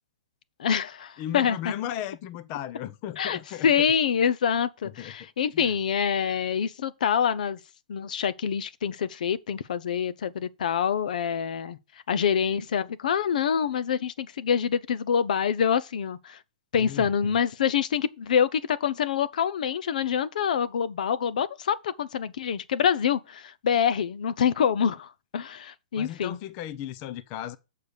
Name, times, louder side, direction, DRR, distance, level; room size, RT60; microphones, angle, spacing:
voice 1, 0.6-1.7 3.2-7.6 7.9-11.8 12.1-16.4 16.7-26.4, left 7 dB, 65° left, 0.8 m, -26 dB
voice 2, 1.2-3.9 4.8-5.1 5.5-5.8 16.8-17.3 26.0-27.6, left 11 dB, 35° left, 0.7 m, -36 dB
6.6 x 5.4 x 6.7 m
hypercardioid pair, 140°, 5 cm